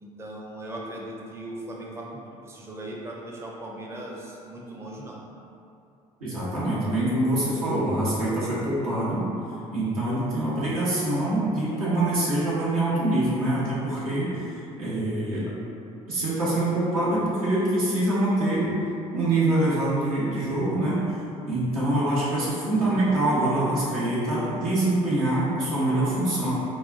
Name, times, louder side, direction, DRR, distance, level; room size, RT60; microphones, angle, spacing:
voice 1, 0.0-5.2, right 1 dB, 15° right, -2 dB, 0.5 m, -38 dB
voice 2, 6.2-9.2 9.7-15.5 16.1-18.7 19.1-21.2 21.5-26.5, right 1 dB, 80° right, -9 dB, 0.9 m, -25 dB
3.9 x 2.3 x 2.4 m, 2.7 s
figure-of-eight pair, 55°, 18 cm